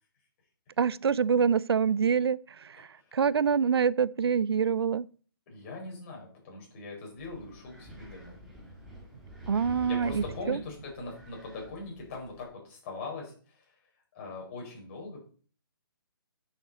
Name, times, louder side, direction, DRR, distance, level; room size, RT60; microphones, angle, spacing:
voice 1, 0.8-5.1 9.5-10.6, right 6 dB, 85° right, 0.4 m, -26 dB
voice 2, 5.5-8.4 9.9-13.7 14.1-15.2, left 3 dB, 35° left, 4.7 m, -41 dB
Wind, 7.2-12.4, right 1 dB, 5° right, 2.2 m, -47 dB
10.5 x 6.6 x 4.2 m
hypercardioid pair, 155°, 13 cm